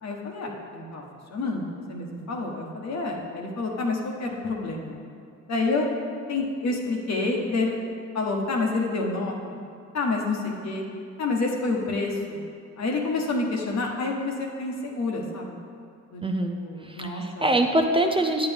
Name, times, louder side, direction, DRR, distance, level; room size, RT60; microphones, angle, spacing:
voice 1, 0.0-1.0 1.3-5.0 5.5-5.9 6.3-7.8 8.1-9.6 9.9-10.8 11.2-12.4 12.8-15.6 16.1-16.2 16.5-17.4, left 3 dB, 60° left, 0 dB, 1.4 m, -28 dB
voice 2, 16.2-18.5, right 1 dB, 20° right, 4 dB, 0.5 m, -24 dB
9.4 x 7.9 x 3.5 m, 2.4 s
cardioid pair, 90°, 30 cm